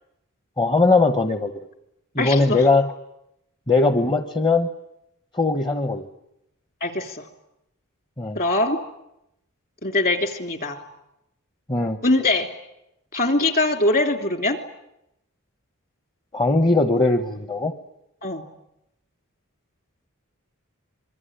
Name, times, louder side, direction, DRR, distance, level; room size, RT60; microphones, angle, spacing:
voice 1, 0.6-1.5 2.1-2.9 3.7-4.7 5.3-6.1 8.2-8.4 11.7-12.0 16.3-17.7, left 3 dB, 20° left, 9 dB, 1.0 m, -20 dB
voice 2, 2.2-2.6 6.8-7.3 8.3-8.8 9.8-10.8 12.0-12.5 13.1-14.6 18.2-18.4, left 2 dB, 45° left, 7 dB, 3.0 m, -22 dB
26.0 x 22.5 x 10.0 m, 0.83 s
head